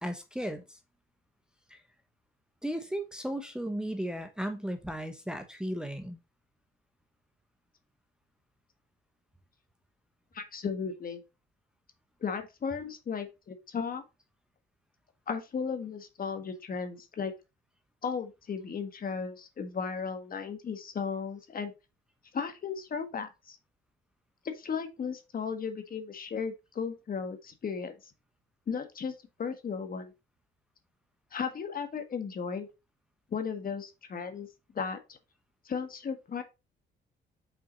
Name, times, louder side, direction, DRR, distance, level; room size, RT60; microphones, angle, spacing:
voice 1, 0.0-0.8 1.7-1.8 2.6-6.2, equal, 5° right, 0.9 m, -35 dB
voice 2, 10.3-11.2 12.2-14.0 15.3-17.3 18.0-21.7 22.3-23.6 24.4-28.1 28.7-29.1 29.4-30.1 31.3-32.7 33.3-34.5 34.7-35.2 35.6-36.4, left 6 dB, 45° left, 1.5 m, -35 dB
5.8 x 4.5 x 4.0 m
cardioid pair, 90°, 20 cm